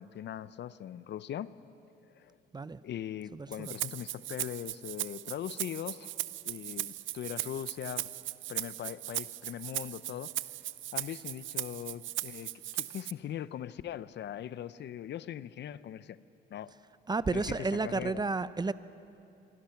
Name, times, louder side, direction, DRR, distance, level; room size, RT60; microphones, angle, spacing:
voice 1, 0.0-1.5 2.2-2.3 2.8-6.2 6.4-8.1 8.5-10.6 10.9-16.2 16.5-16.7 17.3-18.2, left 10 dB, 60° left, 16 dB, 0.6 m, -40 dB
voice 2, 3.3-3.7 17.1-18.7, right 3 dB, 20° right, 15 dB, 0.6 m, -32 dB
Rattle (instrument), 3.5-13.1, right 14 dB, 80° right, 0.6 m, -38 dB
26.5 x 23.5 x 5.8 m, 2.7 s
cardioid pair, 90°, 20 cm